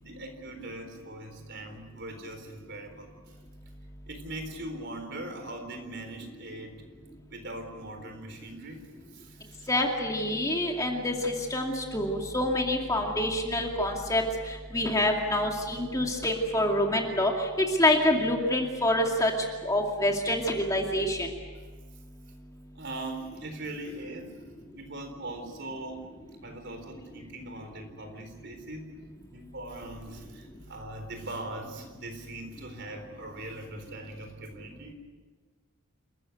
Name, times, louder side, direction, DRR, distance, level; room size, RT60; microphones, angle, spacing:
voice 1, 0.0-3.1 4.1-6.8 7.3-8.8 9.1-9.7 22.7-24.4 24.7-26.1 26.4-28.9 29.3-34.9, right 1 dB, 50° right, 5 dB, 4.0 m, -41 dB
voice 2, 9.7-19.3 19.6-21.3, left 1 dB, 15° left, 1 dB, 2.4 m, -26 dB
28.5 x 14.5 x 9.3 m, 1.5 s
head